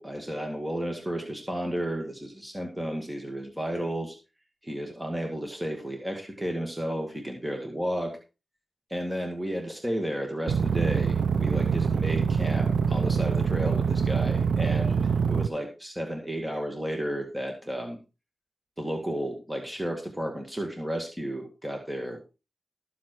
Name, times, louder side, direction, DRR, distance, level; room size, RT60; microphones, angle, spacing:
voice 1, 0.0-4.2 4.6-8.2 8.9-18.0 18.8-22.2, equal, 5° right, 2 dB, 2.0 m, -33 dB
sound 1, 10.5-15.5, right 6 dB, 85° right, 0.5 m, -25 dB
13.5 x 7.6 x 4.6 m, 0.31 s
wide cardioid pair, 135°, 0 cm